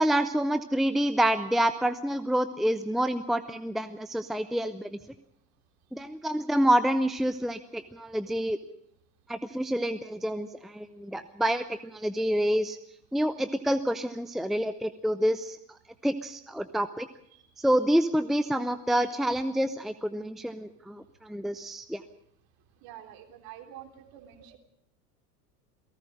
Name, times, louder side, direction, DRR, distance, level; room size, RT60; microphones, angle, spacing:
voice 1, 0.0-5.0 5.9-8.6 9.3-12.8 13.1-15.6 16.0-17.1 17.6-22.0, equal, ahead, 12 dB, 0.8 m, -27 dB
voice 2, 22.8-24.6, right 10 dB, 45° right, 6 dB, 3.6 m, -48 dB
29.0 x 18.0 x 5.0 m, 0.71 s
figure-of-eight pair, 80°, 47 cm